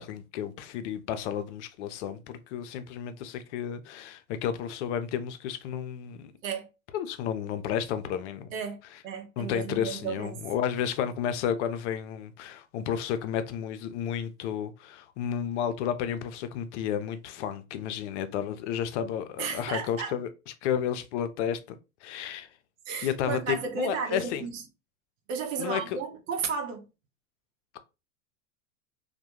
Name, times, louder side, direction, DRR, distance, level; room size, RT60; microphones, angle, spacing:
voice 1, 0.0-6.3 6.9-8.5 9.4-20.3 20.6-21.6 22.0-22.5 23.0-24.5 25.6-26.0, left 9 dB, 60° left, 0.5 m, -32 dB
voice 2, 9.0-10.5 19.4-20.2 22.9-24.6 25.3-26.9, right 5 dB, 70° right, 0.8 m, -33 dB
2.2 x 2.1 x 2.8 m
hypercardioid pair, 105°, 41 cm